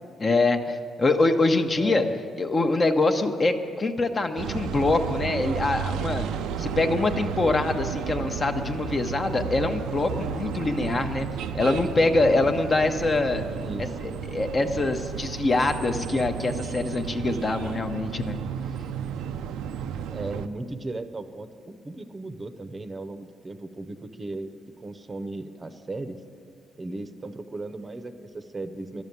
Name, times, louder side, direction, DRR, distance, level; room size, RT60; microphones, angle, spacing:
voice 1, 0.2-2.0 2.4-11.3 11.5-13.5 13.8-18.4, left 2 dB, 35° left, 6 dB, 0.9 m, -24 dB
voice 2, 1.7-2.1 13.5-13.9 20.1-24.5 24.8-26.2 26.8-29.0, right 2 dB, 30° right, 9 dB, 0.7 m, -36 dB
sound 1, 4.4-20.5, right 8 dB, 90° right, 0.4 m, -33 dB
12.0 x 7.1 x 9.3 m, 2.2 s
cardioid pair, 90°, 0 cm